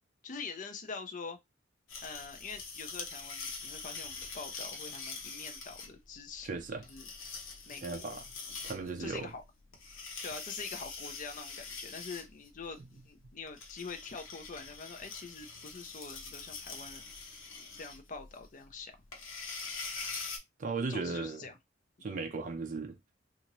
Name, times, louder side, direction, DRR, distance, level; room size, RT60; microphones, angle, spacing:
voice 1, 0.2-1.4 2.0-6.5 6.9-7.0 7.7-8.2 8.7-9.4 10.2-12.8 13.1-17.0 17.7-18.9 20.9-21.6, left 4 dB, 40° left, 0.5 m, -45 dB
sound 1, 1.9-20.4, left 4 dB, 85° left, 0.8 m, -44 dB
voice 2, 6.4-6.8 7.8-8.2 8.6-9.3 20.6-21.4 22.0-23.0, right 4 dB, 40° right, 0.4 m, -36 dB
2.8 x 2.5 x 3.0 m
head